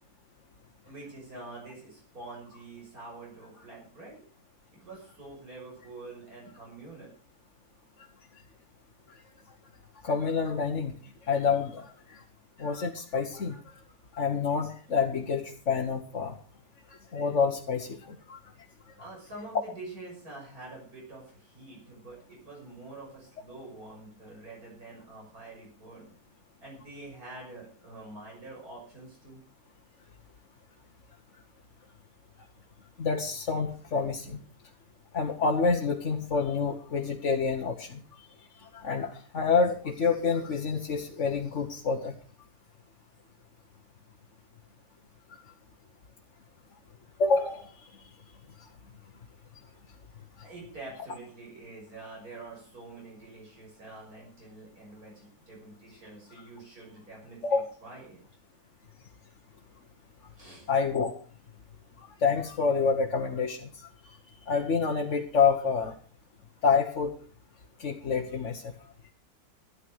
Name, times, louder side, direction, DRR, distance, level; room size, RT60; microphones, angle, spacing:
voice 1, 0.9-4.2 4.7-7.1 19.0-26.1 26.6-29.4 50.4-58.2 60.4-60.7, right 2 dB, 70° right, -3 dB, 6.9 m, -46 dB
voice 2, 10.0-11.0 11.2-12.2 12.6-13.6 14.1-16.4 17.1-18.4 33.0-34.4 35.1-38.0 38.6-42.1 47.2-47.9 57.4-57.6 60.7-61.1 62.0-65.9 66.6-67.1 67.8-68.7, left 5 dB, 55° left, 2 dB, 1.5 m, -28 dB
13.0 x 11.0 x 6.4 m, 0.41 s
omnidirectional pair, 1.6 m